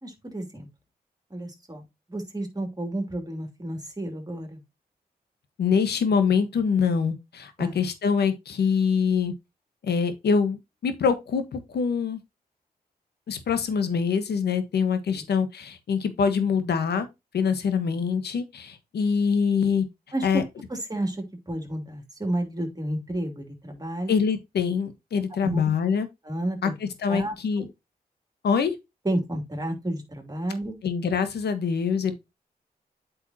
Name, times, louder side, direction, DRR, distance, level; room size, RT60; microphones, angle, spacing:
voice 1, 0.0-0.7 1.3-1.8 2.1-4.6 7.6-7.7 20.1-20.4 20.9-21.2 21.5-24.2 25.4-25.6 26.3-26.7 27.1-27.7 29.0-30.8, right 1 dB, 25° right, 3.0 m, -31 dB
voice 2, 5.6-9.3 9.8-12.2 13.3-17.1 17.3-19.9 20.2-20.4 24.1-26.1 26.6-27.7 28.4-28.7 30.8-32.1, left 6 dB, 85° left, 1.3 m, -24 dB
8.5 x 5.4 x 2.9 m
cardioid pair, 55°, 17 cm